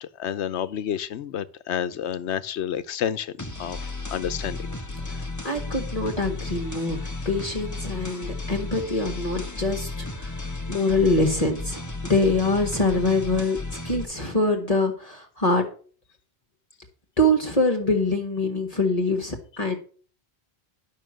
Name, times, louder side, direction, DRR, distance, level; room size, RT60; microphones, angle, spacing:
voice 1, 0.0-3.3 3.6-4.6, left 9 dB, 90° left, 1.0 m, -30 dB
sound 1, 3.4-14.0, left 2 dB, 15° left, 1.0 m, -34 dB
voice 2, 5.0-7.0 7.2-13.6 13.8-15.7 17.2-19.7, left 2 dB, 35° left, 1.5 m, -24 dB
11.0 x 5.9 x 6.3 m
omnidirectional pair, 1.1 m